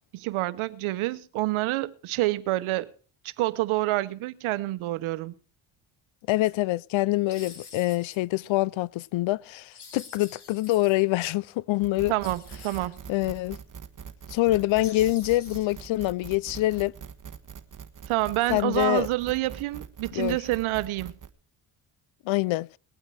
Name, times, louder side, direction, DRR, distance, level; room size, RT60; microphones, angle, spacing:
voice 1, 0.1-2.9 3.4-5.3 12.1-13.0 18.1-21.1, right 17 dB, 85° right, 1.0 m, -27 dB
voice 2, 6.3-12.1 13.1-13.6 14.3-16.9 18.5-19.1 20.1-20.4 22.3-22.7, left 17 dB, 70° left, 0.6 m, -25 dB
sound 1, 6.3-6.5 7.3-8.2 9.7-10.9 12.2-13.0 14.8-15.9, left 5 dB, 55° left, 4.1 m, -47 dB
sound 2, 11.8-21.3, right 7 dB, 40° right, 1.4 m, -43 dB
20.0 x 8.9 x 4.6 m
cardioid pair, 85°, 47 cm